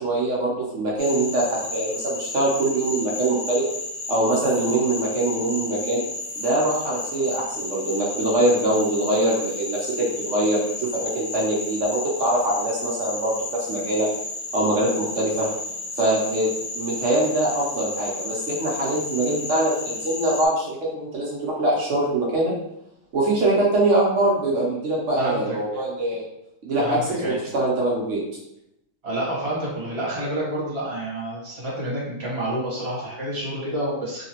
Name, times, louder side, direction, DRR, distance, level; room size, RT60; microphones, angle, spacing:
voice 1, 0.0-3.6 4.1-6.0 6.4-14.1 14.5-15.5 16.0-22.5 23.1-26.2 26.6-28.2, right 1 dB, 80° right, -5 dB, 0.6 m, -23 dB
Frog, 1.0-20.5, left 2 dB, 65° left, 1.6 m, -33 dB
voice 2, 25.1-25.5 26.8-27.4 29.0-34.2, right 1 dB, 35° right, -6 dB, 1.4 m, -28 dB
3.4 x 2.9 x 2.9 m, 0.81 s
omnidirectional pair, 2.4 m